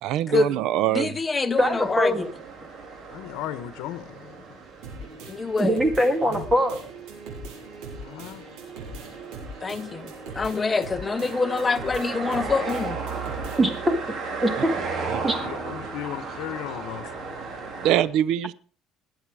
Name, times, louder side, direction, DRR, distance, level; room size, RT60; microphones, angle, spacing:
voice 1, 0.0-1.1 15.1-15.2 17.8-18.5, right 12 dB, 70° right, 0.6 m, -23 dB
voice 2, 0.9-2.1 5.3-5.8 9.6-10.1 10.4-13.0, left 4 dB, 20° left, 0.8 m, -25 dB
voice 3, 1.6-2.3 5.6-6.8 13.6-14.0 14.4-14.7 15.2-15.4, equal, 10° right, 1.8 m, -22 dB
sound 1, 1.6-18.0, right 4 dB, 45° right, 3.7 m, -36 dB
voice 4, 3.1-4.6 6.2-6.5 7.9-8.5 15.1-17.1, left 13 dB, 75° left, 1.1 m, -36 dB
sound 2, 4.8-13.8, right 2 dB, 90° right, 6.5 m, -41 dB
19.5 x 8.0 x 4.9 m
cardioid pair, 135°, 0 cm